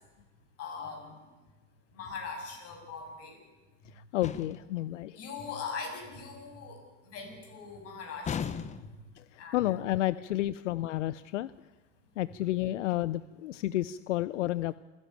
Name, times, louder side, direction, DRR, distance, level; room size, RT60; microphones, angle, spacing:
voice 1, 0.6-1.2 1.9-3.4 5.2-6.8 7.1-8.6 9.4-9.8, left 5 dB, 40° left, 2 dB, 7.3 m, -41 dB
voice 2, 4.1-5.1 9.5-11.5 12.2-14.7, left 15 dB, 85° left, 17 dB, 0.6 m, -30 dB
sound 1, 4.2-4.8 8.2-9.1, left 7 dB, 20° left, 0.8 m, -36 dB
27.5 x 11.0 x 9.0 m, 1.2 s
hypercardioid pair, 115°, 36 cm